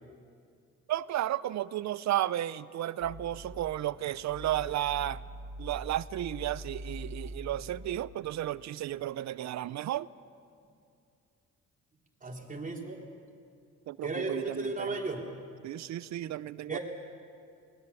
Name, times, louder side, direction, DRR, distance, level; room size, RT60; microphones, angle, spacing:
voice 1, 0.9-5.2 5.6-10.1 13.9-14.9 15.6-16.8, right 13 dB, 65° right, 18 dB, 0.6 m, -33 dB
sound 1, 3.0-8.0, equal, 55° left, 4.3 m, -44 dB
voice 2, 12.2-13.0 14.0-15.3 16.7-16.8, right 2 dB, 25° right, 0 dB, 3.5 m, -35 dB
26.5 x 20.0 x 7.0 m, 2.4 s
cardioid pair, 90°, 30 cm